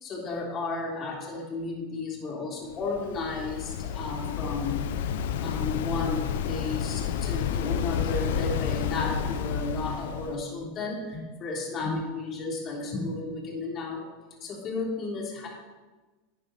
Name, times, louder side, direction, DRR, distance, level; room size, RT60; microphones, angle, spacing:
voice 1, 0.0-4.9 5.4-14.0 14.4-15.5, left 3 dB, 35° left, -1 dB, 3.2 m, -33 dB
Waves surf, 2.7-10.4, left 8 dB, 80° left, 0.7 m, -30 dB
11.5 x 9.3 x 4.1 m, 1.2 s
supercardioid pair, 130°, 0 cm